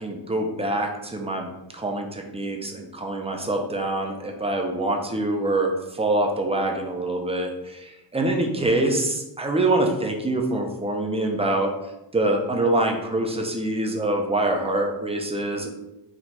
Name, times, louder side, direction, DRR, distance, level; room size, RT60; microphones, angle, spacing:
voice 1, 0.0-1.5 1.7-11.7 12.1-15.7, right 2 dB, 15° right, 2 dB, 0.6 m, -25 dB
4.2 x 2.5 x 4.5 m, 0.94 s
wide cardioid pair, 125°, 42 cm